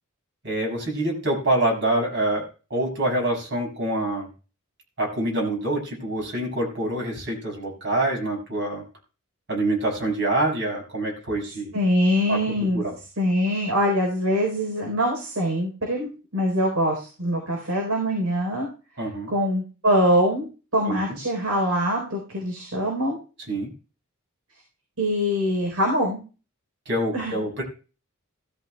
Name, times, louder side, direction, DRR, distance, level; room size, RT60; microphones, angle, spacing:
voice 1, 0.4-4.3 5.0-8.8 9.5-11.7 12.3-12.4 12.7-12.9 19.0-19.3 20.9-21.2 23.5-23.7 26.9-27.6, right 1 dB, 55° right, 0 dB, 6.4 m, -26 dB
voice 2, 11.7-12.8 13.2-18.7 19.3-23.2 25.0-26.2 27.1-27.4, equal, 80° right, 0 dB, 4.1 m, -23 dB
17.0 x 13.5 x 2.3 m, 0.35 s
head